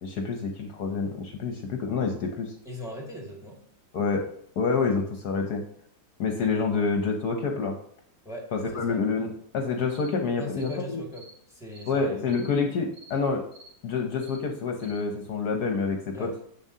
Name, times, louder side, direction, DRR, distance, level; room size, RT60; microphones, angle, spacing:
voice 1, 0.0-2.6 3.9-4.2 4.6-5.6 6.2-7.7 8.5-11.0 11.9-13.4 13.8-16.3, left 4 dB, 65° left, 3 dB, 1.3 m, -27 dB
voice 2, 2.7-3.6 8.2-9.0 10.4-12.4 16.1-16.4, left 1 dB, ahead, 0 dB, 1.8 m, -40 dB
sound 1, 9.9-10.1 10.6-10.8 11.1-11.3 11.7-11.9 12.3-12.5 12.9-13.1 13.5-13.7 14.2-14.4 14.8-15.0, right 2 dB, 35° right, 1.8 m, -50 dB
7.7 x 7.2 x 2.8 m, 0.65 s
omnidirectional pair, 1.9 m